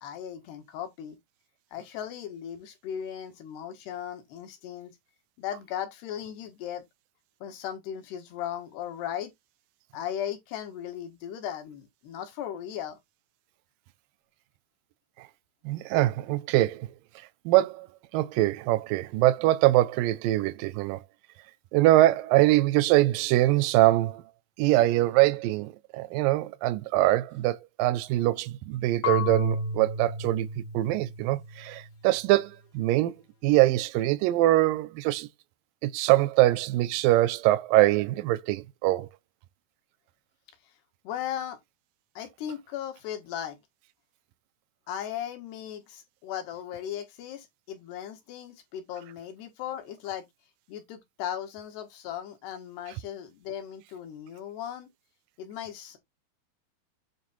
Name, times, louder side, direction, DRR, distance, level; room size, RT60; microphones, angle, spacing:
voice 1, 0.0-1.2 1.7-5.0 5.4-6.8 7.4-9.3 9.9-13.0 41.1-41.6 42.2-43.6 44.9-50.3 50.7-54.9 55.4-56.0, left 10 dB, 80° left, 3.9 m, -37 dB
voice 2, 15.7-16.9 17.5-17.9 18.1-21.0 21.7-24.2 24.6-33.2 33.4-35.3 35.8-39.1, right 16 dB, 80° right, 2.1 m, -23 dB
Marimba xylophone / Wood, 29.0-31.9, left 2 dB, 65° left, 1.4 m, -32 dB
9.3 x 3.5 x 4.3 m
omnidirectional pair, 4.7 m